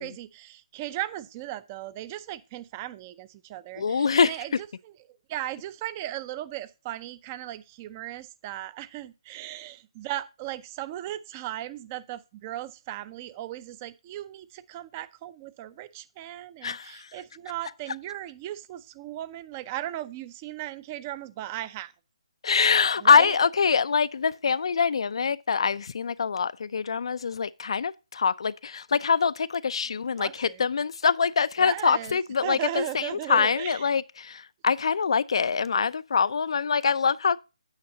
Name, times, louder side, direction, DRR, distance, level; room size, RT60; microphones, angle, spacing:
voice 1, 0.0-4.9 5.3-21.9 23.0-23.4 30.2-30.6 31.6-33.9, right 14 dB, 20° right, 0.5 m, -37 dB
voice 2, 3.8-4.6 16.6-17.1 17.9-18.0 22.4-37.4, left 6 dB, 60° left, 0.4 m, -24 dB
8.9 x 8.8 x 2.8 m
hypercardioid pair, 160°, 3 cm